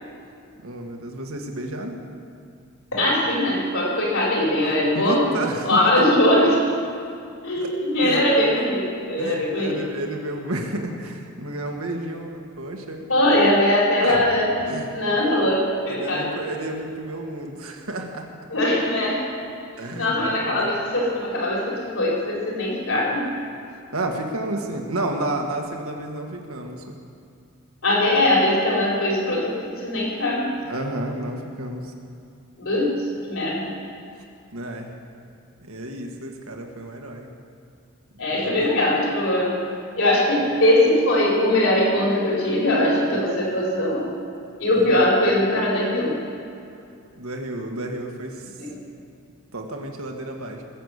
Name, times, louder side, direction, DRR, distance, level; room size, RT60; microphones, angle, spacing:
voice 1, 0.6-2.0 4.9-6.1 7.6-8.2 9.2-13.4 14.0-14.3 14.6-15.2 15.9-18.3 19.8-20.2 20.5-20.7 23.7-27.0 30.6-31.9 34.5-34.9 35.6-37.3 38.3-38.7 44.7-44.9 47.1-48.5 49.5-50.6, right 1 dB, 75° right, 2 dB, 1.8 m, -31 dB
voice 2, 2.9-5.3 5.7-6.6 7.4-9.7 13.1-14.5 14.9-16.2 18.5-19.2 20.0-23.3 27.8-30.5 32.6-33.7 38.2-39.6 40.0-44.1 44.6-46.1 48.6-48.7, left 1 dB, 65° left, -4 dB, 4.1 m, -21 dB
20.0 x 7.1 x 8.1 m, 2.5 s
head